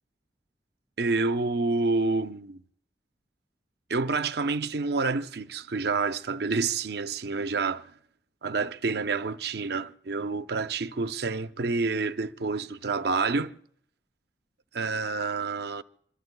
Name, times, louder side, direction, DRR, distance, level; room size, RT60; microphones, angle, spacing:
voice 1, 1.0-2.6 3.9-7.9 8.4-13.6 14.7-15.8, right 4 dB, 60° right, 0.6 m, -28 dB
26.5 x 22.0 x 2.2 m
head